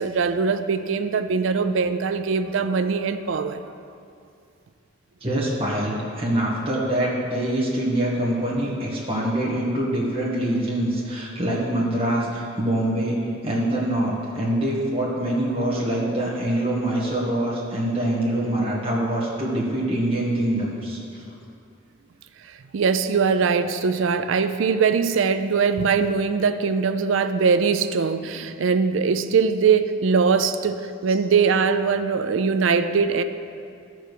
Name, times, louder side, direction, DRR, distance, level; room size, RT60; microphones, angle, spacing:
voice 1, 0.0-3.7 22.7-33.2, right 5 dB, 75° right, 10 dB, 0.4 m, -21 dB
voice 2, 5.2-13.2 13.4-21.2, right 1 dB, 30° right, -6 dB, 1.5 m, -24 dB
12.5 x 4.6 x 6.7 m, 2.4 s
head